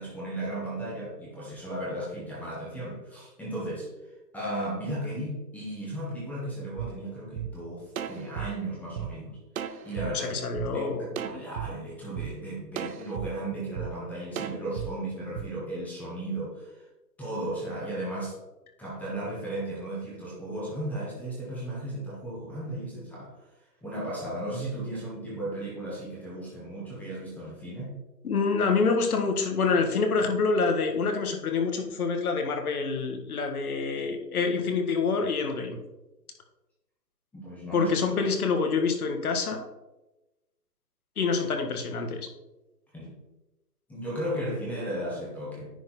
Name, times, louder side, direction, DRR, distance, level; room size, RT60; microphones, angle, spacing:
voice 1, 0.0-3.9 4.3-10.5 10.7-16.8 17.2-18.3 18.8-23.4 23.8-27.9 37.3-37.9 42.9-43.1 43.9-45.7, right 1 dB, 5° left, -7 dB, 1.1 m, -35 dB
sound 1, 6.8-6.9 7.4-7.5 8.0-9.1 9.6-10.1 10.6-10.7 11.2-11.7 12.2-12.3 12.8-13.3 13.8-13.9 14.4-14.9 15.4-15.5, right 10 dB, 55° right, 0.7 m, -34 dB
voice 2, 10.1-11.1 28.2-35.8 37.7-39.6 41.2-42.3, left 4 dB, 60° left, 4 dB, 1.6 m, -26 dB
10.0 x 4.3 x 4.1 m, 1.0 s
hypercardioid pair, 150°, 50 cm